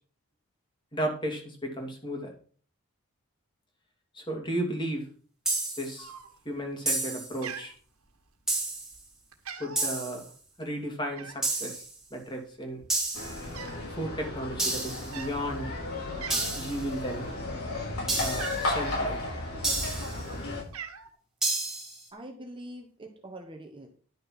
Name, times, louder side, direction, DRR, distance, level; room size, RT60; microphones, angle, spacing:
voice 1, 0.9-2.3 4.1-5.1 5.8-6.1 6.4-7.7 9.6-10.3 10.6-11.8 12.1-12.8 13.9-15.7 16.6-17.2 18.2-19.2, right 1 dB, 20° left, 2 dB, 2.6 m, -34 dB
sound 1, 5.5-6.0 6.9-7.4 8.5-9.0 9.8-10.2 11.4-11.9 12.9-13.4 14.6-15.1 16.3-16.8 18.1-18.6 19.6-20.2 21.4-22.0, right 2 dB, 5° right, 2.8 m, -30 dB
Cat, 6.0-6.6 6.9-7.2 7.4-8.4 8.9-9.1 9.3-10.0 11.2-11.6 12.4-12.5 12.7-13.9 14.1-14.4 15.0-15.4 15.8-15.9 16.2-16.7 17.1-18.8 19.6-20.2 20.4-21.1, right 6 dB, 80° right, 1.7 m, -42 dB
sound 2, 13.1-20.6, left 2 dB, 80° left, 5.1 m, -34 dB
voice 2, 22.1-23.9, right 1 dB, 20° right, 3 dB, 1.2 m, -44 dB
11.0 x 6.5 x 6.0 m, 0.43 s
head